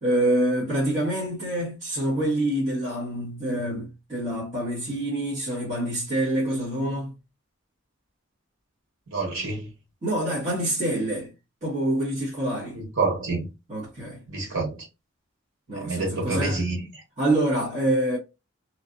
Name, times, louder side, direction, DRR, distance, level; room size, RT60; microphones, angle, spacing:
voice 1, 0.0-7.1 10.0-11.3 11.6-12.8 13.7-14.2 15.7-16.6 17.2-18.2, right 1 dB, 35° right, 1.4 m, -26 dB
voice 2, 9.1-9.7 12.7-13.5 14.3-14.9 15.7-17.0, right 3 dB, 85° right, 1.6 m, -28 dB
3.2 x 2.5 x 2.5 m
head